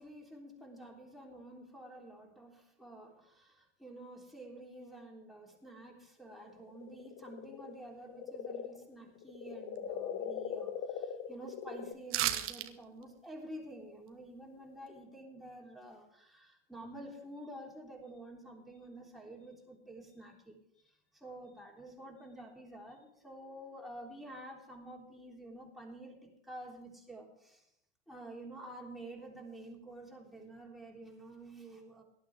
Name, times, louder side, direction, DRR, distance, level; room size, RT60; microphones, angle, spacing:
voice 1, 0.0-20.6 21.2-27.6 28.1-32.0, right 1 dB, ahead, -2 dB, 3.6 m, -49 dB
sound 1, 6.3-11.9, left 8 dB, 35° left, 0.9 m, -41 dB
sound 2, 12.1-12.7 13.0-13.1, right 13 dB, 35° right, 1.2 m, -32 dB
18.5 x 12.0 x 3.6 m, 0.74 s
hypercardioid pair, 90°, 35 cm